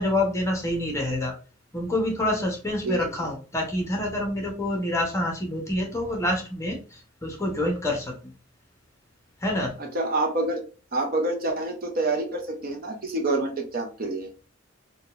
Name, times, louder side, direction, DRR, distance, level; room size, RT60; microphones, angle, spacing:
voice 1, 0.0-1.3 1.7-8.1 9.4-9.8, left 1 dB, 15° left, 1 dB, 0.9 m, -27 dB
voice 2, 9.8-10.6 10.9-14.3, right 2 dB, 45° right, 3 dB, 0.7 m, -27 dB
3.8 x 2.3 x 2.4 m, 0.36 s
head